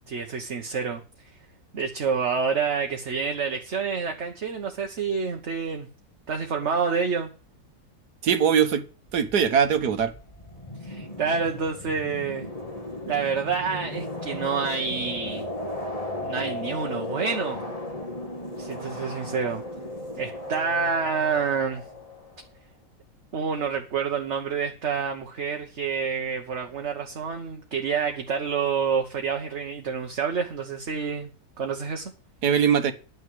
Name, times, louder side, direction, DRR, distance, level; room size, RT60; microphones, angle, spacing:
voice 1, 0.1-1.0 1.7-5.9 6.3-7.3 10.8-12.5 13.1-15.5 16.2-17.6 18.6-19.6 20.2-21.8 23.3-31.3 31.6-32.1, right 6 dB, 50° right, 1.4 m, -28 dB
voice 2, 8.2-8.8 9.1-10.1 32.4-32.9, right 7 dB, 80° right, 1.8 m, -21 dB
sound 1, 9.1-22.5, left 1 dB, 25° left, 1.9 m, -36 dB
10.5 x 6.4 x 7.7 m
omnidirectional pair, 1.7 m